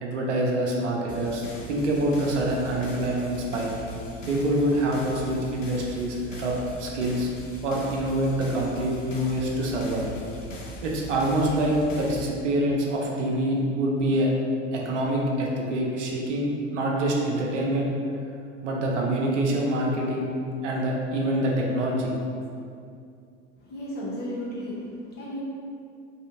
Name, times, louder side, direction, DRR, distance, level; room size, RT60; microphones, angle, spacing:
voice 1, 0.0-3.7 4.2-7.3 7.6-10.1 10.8-14.3 14.7-17.9 18.6-20.3 20.6-22.1, right 1 dB, 70° right, -2 dB, 0.6 m, -26 dB
sound 1, 1.1-12.2, left 1 dB, 90° left, 0.5 m, -41 dB
voice 2, 23.6-25.4, equal, 25° left, -7 dB, 0.8 m, -34 dB
2.7 x 2.7 x 2.5 m, 2.4 s
figure-of-eight pair, 80°, 37 cm